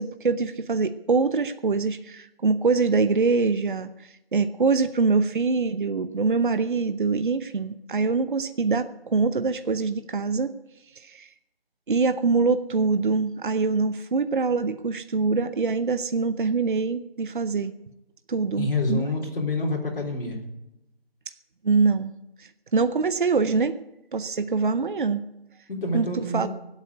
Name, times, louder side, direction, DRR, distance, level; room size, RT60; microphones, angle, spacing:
voice 1, 0.0-10.5 10.9-11.3 11.9-17.7 18.3-19.0 21.6-22.1 22.4-23.8 24.1-25.2 25.9-26.5, right 4 dB, 55° right, 11 dB, 0.8 m, -24 dB
voice 2, 18.6-20.4 25.7-26.5, left 2 dB, 60° left, -2 dB, 3.6 m, -27 dB
18.5 x 8.3 x 7.9 m, 0.89 s
figure-of-eight pair, 165°, 31 cm